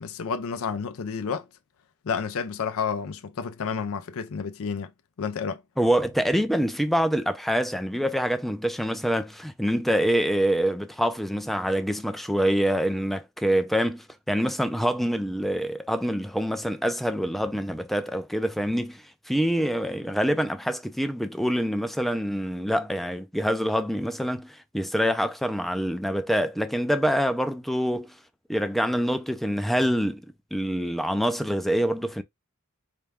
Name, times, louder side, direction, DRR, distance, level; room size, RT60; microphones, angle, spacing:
voice 1, 0.0-1.5 2.0-4.9 5.2-5.6, left 6 dB, 65° left, 0.5 m, -30 dB
voice 2, 5.8-28.1 28.5-30.2 30.5-32.2, equal, ahead, 0.4 m, -25 dB
4.4 x 2.3 x 3.5 m
head